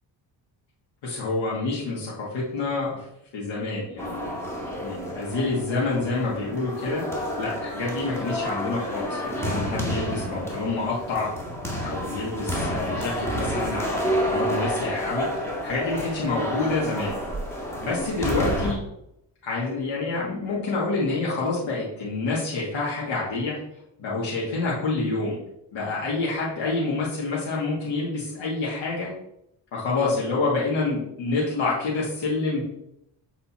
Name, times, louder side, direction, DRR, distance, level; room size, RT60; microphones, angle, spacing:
voice 1, 1.0-3.1 3.3-4.3 4.8-7.0 7.4-11.3 11.8-15.3 15.6-17.2 17.5-18.8 19.4-23.6 24.0-25.4 25.7-29.1 29.7-32.6, left 3 dB, 90° left, -6 dB, 2.2 m, -27 dB
sound 1, 4.0-18.7, equal, 5° left, 2.0 m, -30 dB
7.7 x 4.2 x 4.3 m, 0.78 s
cardioid pair, 90°, 44 cm